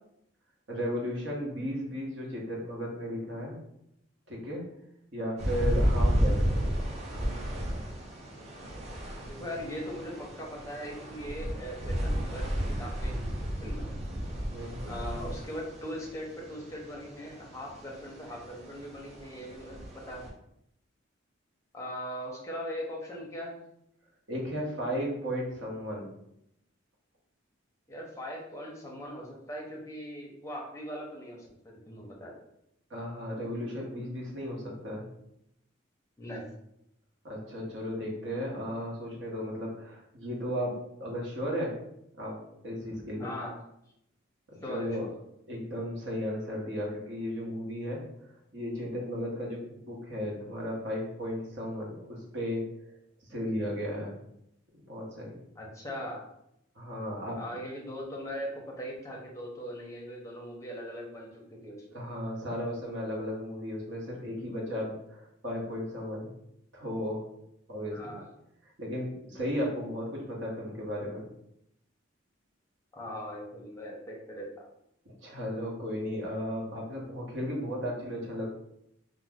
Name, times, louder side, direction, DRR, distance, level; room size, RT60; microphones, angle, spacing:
voice 1, 0.7-3.6 4.3-4.6 5.1-6.7 14.5-15.0 24.3-26.1 32.9-35.1 37.2-41.8 42.1-42.4 42.6-43.3 44.5-45.1 45.5-48.0 48.5-52.7 53.3-54.1 54.9-55.4 56.8-57.4 61.9-66.3 66.7-67.2 67.7-68.2 68.8-71.2 75.0-78.5, equal, 65° right, -3 dB, 0.9 m, -35 dB
sound 1, 5.4-20.3, equal, 35° right, 0.5 m, -33 dB
voice 2, 9.3-13.9 14.9-20.3 21.7-23.6 27.9-32.3 36.2-36.5 43.2-43.5 44.6-45.1 55.6-56.2 57.3-58.5 58.8-61.3 61.6-62.0 67.9-68.3 72.9-74.5, equal, 15° left, -1 dB, 0.6 m, -40 dB
2.9 x 2.0 x 3.5 m, 0.77 s
head